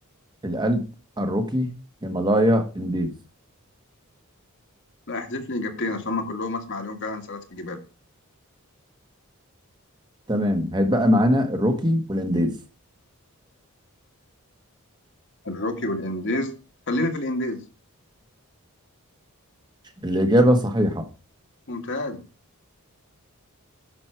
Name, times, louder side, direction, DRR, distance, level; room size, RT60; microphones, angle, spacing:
voice 1, 0.4-0.8 1.2-1.7 2.0-3.1 10.3-12.5 20.0-21.0, equal, 20° right, 6 dB, 1.3 m, -21 dB
voice 2, 5.1-7.8 15.4-16.6 16.9-17.6 21.7-22.2, left 2 dB, 55° left, 6 dB, 1.7 m, -28 dB
10.5 x 6.3 x 4.5 m, 0.32 s
head